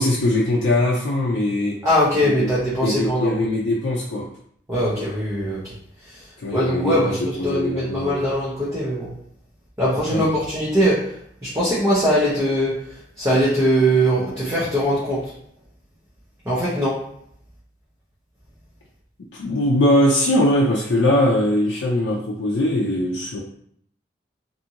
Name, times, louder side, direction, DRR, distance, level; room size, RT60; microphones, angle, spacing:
voice 1, 0.0-1.8 2.2-2.5 2.8-4.3 6.4-8.3 10.1-10.2 19.3-23.4, left 1 dB, 90° left, -4 dB, 0.4 m, -21 dB
voice 2, 1.8-3.3 4.7-5.6 6.5-7.2 7.4-9.1 9.8-11.1 11.4-12.8 13.2-15.2 16.5-17.0, equal, 15° right, -8 dB, 0.6 m, -21 dB
2.6 x 2.5 x 2.7 m, 0.67 s
head